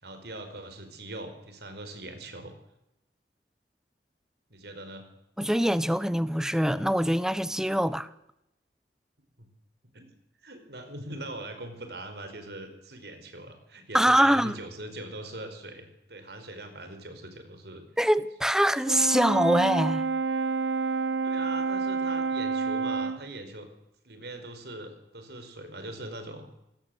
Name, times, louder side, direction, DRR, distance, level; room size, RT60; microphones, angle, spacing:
voice 1, 0.0-2.5 4.5-5.0 9.4-9.5 9.9-10.1 10.4-17.8 21.2-23.7 24.0-26.5, right 2 dB, 70° right, 5.1 m, -41 dB
voice 2, 5.4-8.1 13.9-14.5 18.0-20.0, equal, 5° right, 0.9 m, -24 dB
Brass instrument, 18.9-23.3, right 4 dB, 85° right, 0.8 m, -28 dB
26.5 x 18.5 x 8.0 m
head